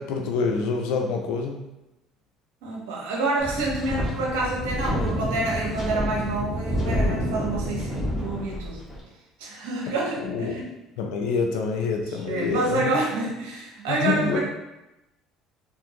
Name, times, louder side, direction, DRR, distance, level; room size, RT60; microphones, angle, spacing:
voice 1, 0.0-1.6 10.2-10.5 11.0-12.9 13.9-14.4, left 5 dB, 75° left, 3 dB, 0.4 m, -26 dB
voice 2, 2.6-8.8 9.4-10.7 12.3-14.4, right 2 dB, 80° right, -3 dB, 1.0 m, -28 dB
Wind, 3.4-9.0, equal, 15° left, 1.5 m, -28 dB
3.4 x 2.5 x 2.8 m, 0.95 s
supercardioid pair, 80°, 0 cm